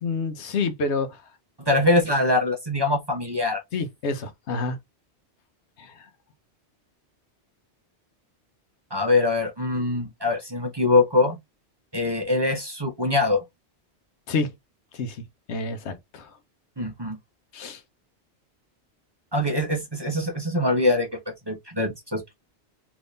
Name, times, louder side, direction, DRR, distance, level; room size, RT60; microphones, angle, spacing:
voice 1, 0.0-1.2 3.7-4.8 5.8-6.0 14.3-14.5 14.9-15.2 15.5-16.3 17.5-17.8, left 3 dB, 80° left, 1.0 m, -28 dB
voice 2, 1.7-3.6 8.9-11.4 11.9-13.4 16.8-17.2 19.3-21.1 21.5-22.2, left 2 dB, 25° right, 0.8 m, -23 dB
3.5 x 3.0 x 2.5 m
omnidirectional pair, 1.1 m